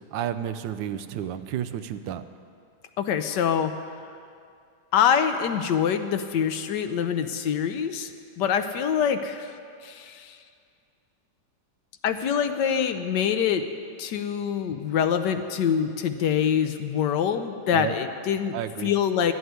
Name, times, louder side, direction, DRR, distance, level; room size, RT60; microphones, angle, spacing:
voice 1, 0.1-2.2 17.7-17.9 18.5-18.9, right 10 dB, 80° right, 11 dB, 1.3 m, -31 dB
voice 2, 3.0-3.7 4.9-8.1 8.4-9.5 9.8-10.4 12.0-13.7 14.0-19.3, left 8 dB, 70° left, 9 dB, 1.2 m, -25 dB
12.5 x 8.0 x 9.4 m, 2.4 s
omnidirectional pair, 2.0 m